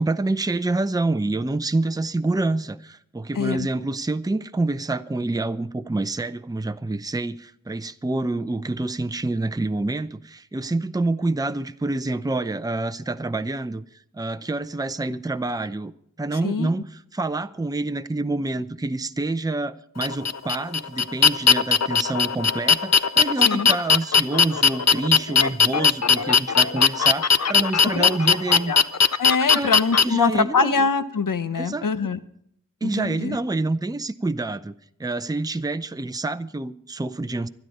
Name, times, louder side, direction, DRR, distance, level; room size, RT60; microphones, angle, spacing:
voice 1, 0.0-13.8 14.1-15.9 16.2-28.7 29.5-29.7 30.0-30.8 31.6-31.9 32.8-34.7 35.0-37.5, right 2 dB, 10° right, 0.6 m, -27 dB
voice 2, 3.3-3.7 16.4-16.7 23.4-23.7 27.9-28.2 28.5-28.8 29.2-32.2 32.8-33.4, left 4 dB, 75° left, 1.0 m, -24 dB
sound 1, 20.0-30.0, left 5 dB, 55° left, 0.6 m, -18 dB
25.0 x 9.4 x 4.2 m
wide cardioid pair, 75°, 32 cm